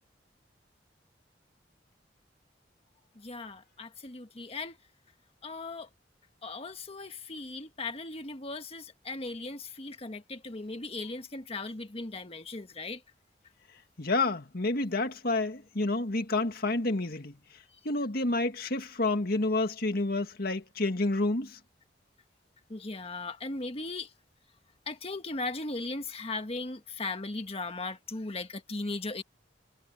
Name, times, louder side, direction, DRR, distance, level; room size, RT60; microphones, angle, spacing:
voice 1, 3.2-4.8 5.4-5.9 6.4-13.0 22.7-24.1 24.9-29.2, left 3 dB, 35° left, 1.5 m, -38 dB
voice 2, 14.0-17.4 17.8-21.6, left 2 dB, 60° left, 2.0 m, -29 dB
head